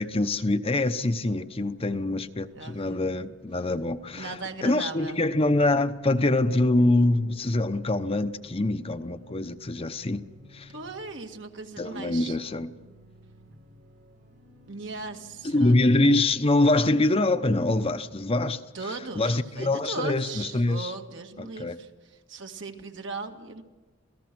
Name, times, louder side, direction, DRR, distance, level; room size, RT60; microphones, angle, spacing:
voice 1, 0.0-4.3 4.6-10.2 10.5-10.7 11.8-12.7 15.4-18.6 19.2-20.9 21.4-21.8, left 2 dB, 30° left, 0.8 m, -24 dB
sound 1, 1.0-18.3, right 2 dB, 85° right, 6.2 m, -54 dB
voice 2, 1.8-2.2 2.5-3.3 4.1-5.2 10.7-12.4 14.7-15.8 18.7-23.6, right 3 dB, 70° right, 2.0 m, -38 dB
28.0 x 17.5 x 6.1 m
head